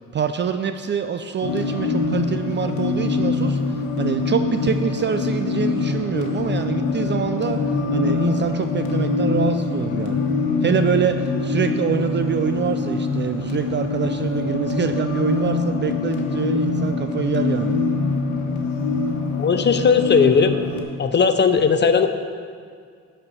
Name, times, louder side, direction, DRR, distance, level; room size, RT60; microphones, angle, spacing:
voice 1, 0.1-7.6 7.9-10.2 10.6-17.8, right 7 dB, 40° right, 8 dB, 0.4 m, -25 dB
sound 1, 1.4-20.8, left 4 dB, 75° left, 1.3 m, -24 dB
voice 2, 19.4-20.6 21.0-22.1, left 5 dB, 35° left, 9 dB, 0.6 m, -17 dB
11.0 x 4.4 x 6.6 m, 2.1 s
cardioid pair, 90°, 30 cm